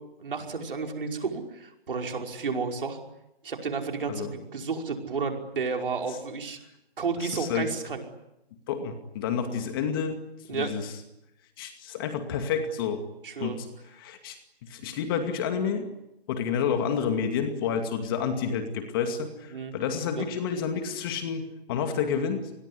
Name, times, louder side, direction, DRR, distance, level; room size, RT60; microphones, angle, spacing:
voice 1, 0.2-3.0 3.4-6.6 7.0-8.0 10.5-10.7 13.2-13.6 19.5-19.7 20.2-20.3, right 4 dB, 55° right, 3 dB, 5.4 m, -31 dB
voice 2, 7.2-7.7 8.7-10.2 10.5-10.9 11.6-13.0 13.4-13.7 13.9-14.4 14.6-15.9 16.3-22.4, left 7 dB, 20° left, 7 dB, 2.3 m, -29 dB
28.0 x 21.5 x 9.8 m, 0.86 s
hypercardioid pair, 160°, 32 cm